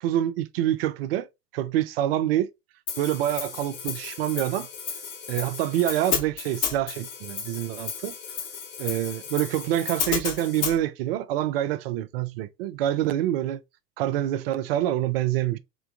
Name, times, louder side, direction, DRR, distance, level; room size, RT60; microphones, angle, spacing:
voice 1, 0.0-1.3 1.5-2.5 3.0-4.7 5.3-8.2 8.8-13.6 14.0-15.6, right 12 dB, 40° right, 0.4 m, -26 dB
Hi-hat, 2.9-10.8, left 6 dB, 50° left, 2.1 m, -33 dB
3.8 x 3.3 x 2.5 m
figure-of-eight pair, 85°, 48 cm